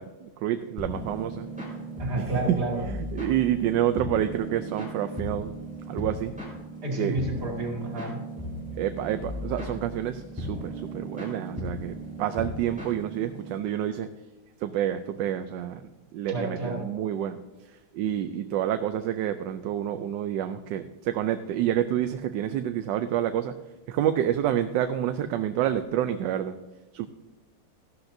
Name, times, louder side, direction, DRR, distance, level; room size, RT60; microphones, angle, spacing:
voice 1, 0.0-1.5 2.2-2.6 2.9-5.5 5.9-6.4 7.0-7.2 8.8-14.1 14.6-15.8 16.1-17.4 17.9-23.6 23.9-26.6 26.9-27.1, right 11 dB, 80° right, 9 dB, 1.2 m, -28 dB
sound 1, 0.8-13.6, equal, 5° right, 4.1 m, -37 dB
voice 2, 2.0-2.9 6.8-8.2 16.3-16.9, right 2 dB, 60° right, 0 dB, 2.7 m, -30 dB
14.5 x 11.5 x 2.6 m, 1.1 s
omnidirectional pair, 2.0 m